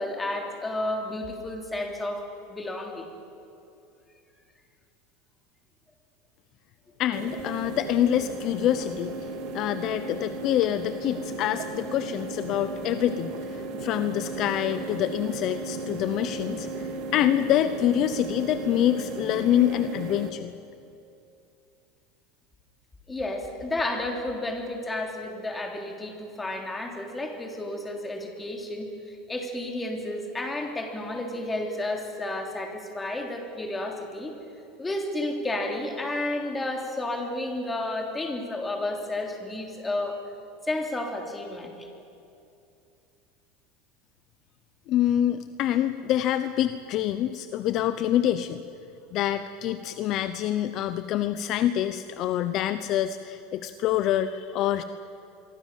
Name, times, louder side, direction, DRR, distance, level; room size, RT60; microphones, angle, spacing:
voice 1, 0.0-2.2 2.5-3.1 23.1-34.3 34.8-40.2 40.6-41.9, left 1 dB, 10° left, 3 dB, 3.4 m, -31 dB
voice 2, 7.0-9.1 9.5-20.5 44.9-48.6 49.1-54.8, left 11 dB, 40° left, 11 dB, 0.8 m, -26 dB
sound 1, 7.1-20.3, right 3 dB, 50° right, 2.4 m, -35 dB
26.0 x 23.5 x 7.5 m, 2.7 s
supercardioid pair, 150°, 0 cm